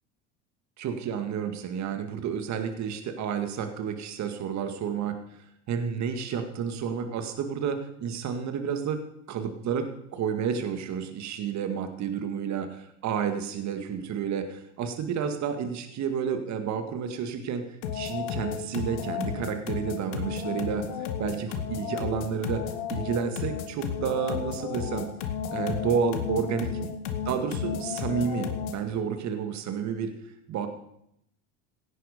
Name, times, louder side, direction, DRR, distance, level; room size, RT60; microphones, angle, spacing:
voice 1, 0.8-5.2 5.7-9.0 9.3-17.6 17.9-22.6 22.9-25.1 25.5-26.9 27.3-30.1 30.5-30.7, right 7 dB, 45° right, 7 dB, 2.0 m, -30 dB
sound 1, 17.8-28.9, left 7 dB, 70° left, 2.0 m, -33 dB
17.0 x 10.0 x 5.3 m, 0.76 s
hypercardioid pair, 85°, 38 cm